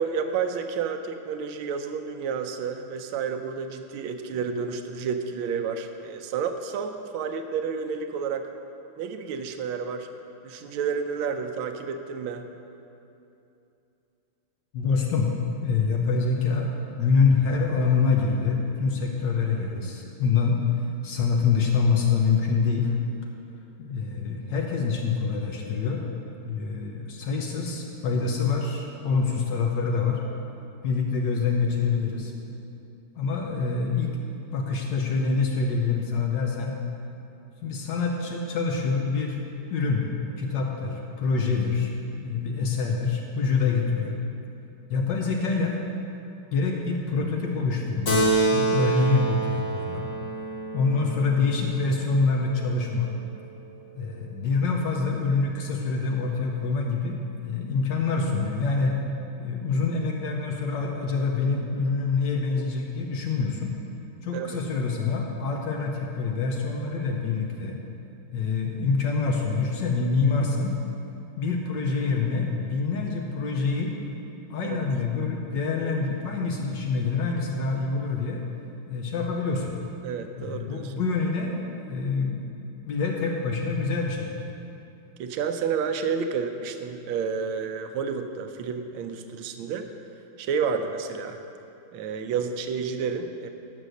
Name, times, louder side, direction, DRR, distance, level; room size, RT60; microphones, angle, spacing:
voice 1, 0.0-8.5 9.0-10.1 10.4-12.5 64.3-64.6 74.6-74.8 80.0-80.9 85.2-89.9 90.4-91.4 91.9-93.5, right 6 dB, 85° right, 7 dB, 1.4 m, -30 dB
voice 2, 14.7-15.3 15.6-23.0 23.8-26.1 26.4-30.2 30.8-32.3 33.1-34.2 34.5-36.7 37.6-39.4 39.7-40.0 40.4-41.9 42.2-44.2 44.9-45.8 46.5-48.2 48.5-50.1 50.7-53.1 53.9-57.2 57.4-59.0 59.4-63.7 64.2-67.8 68.3-70.7 71.4-73.9 74.5-78.4 78.9-79.7 80.4-82.5 82.9-84.3, left 4 dB, 70° left, 0 dB, 1.4 m, -26 dB
Keyboard (musical), 48.1-52.9, right 2 dB, 45° left, 1.3 m, -27 dB
9.3 x 6.3 x 6.4 m, 2.8 s
omnidirectional pair, 2.2 m